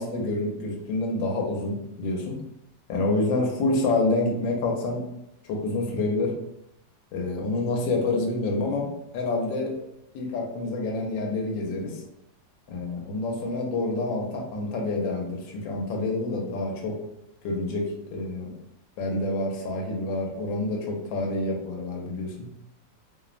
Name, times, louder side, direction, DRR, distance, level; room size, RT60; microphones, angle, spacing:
voice 1, 0.0-2.4 2.9-5.0 5.5-6.3 7.1-8.9 9.1-9.7 10.1-12.0 12.7-17.0 17.4-18.5 19.0-22.5, left 2 dB, 85° left, 0 dB, 1.3 m, -27 dB
3.2 x 2.0 x 2.4 m, 0.80 s
omnidirectional pair, 2.0 m